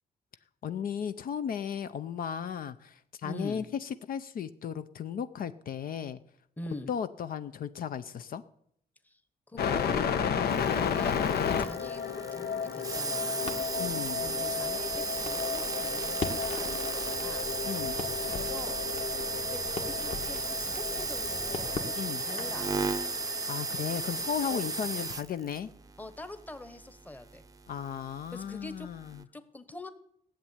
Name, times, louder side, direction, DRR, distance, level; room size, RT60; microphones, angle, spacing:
voice 1, 0.6-6.2 6.9-8.4 13.8-14.3 17.6-17.9 22.0-22.3 23.5-25.7 27.7-29.2, left 8 dB, 65° left, 12 dB, 0.6 m, -35 dB
voice 2, 3.2-3.6 6.6-6.9 9.0-9.2 9.5-13.6 14.2-17.5 18.3-18.8 19.4-21.9 22.2-22.7 24.2-24.6 26.0-27.4 28.3-28.9 29.3-29.9, left 2 dB, 10° left, 11 dB, 1.1 m, -44 dB
sound 1, 9.6-25.1, left 7 dB, 80° left, 1.1 m, -34 dB
sound 2, 10.5-28.5 29.0-29.2, right 4 dB, 20° right, 0.6 m, -35 dB
Crackle, 13.4-22.6, left 4 dB, 40° left, 1.7 m, -42 dB
16.5 x 7.4 x 10.0 m, 0.69 s
wide cardioid pair, 170°, 16 cm